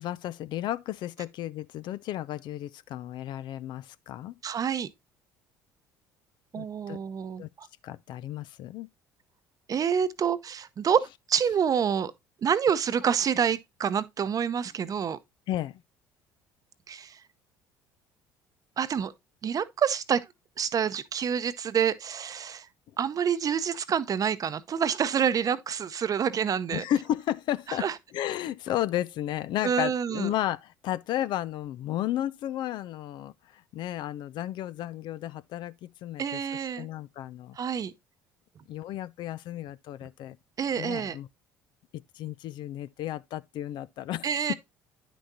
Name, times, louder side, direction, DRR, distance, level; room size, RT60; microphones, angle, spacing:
voice 1, 0.0-4.3 6.5-7.0 7.4-7.5 7.8-8.9 15.5-15.7 26.7-27.9 28.1-36.4 36.8-37.6 38.7-40.4 40.7-41.3 41.9-44.5, left 12 dB, 60° left, 0.5 m, -33 dB
voice 2, 4.4-4.9 6.5-7.7 9.7-12.1 12.4-15.2 16.9-17.2 18.8-19.1 19.4-20.3 20.6-22.7 23.0-26.8 27.8-27.9 29.6-30.3 36.2-36.9 37.6-37.9 40.6-41.2 44.2-44.5, right 7 dB, 40° right, 0.8 m, -27 dB
9.7 x 6.1 x 2.7 m
hypercardioid pair, 60°, 9 cm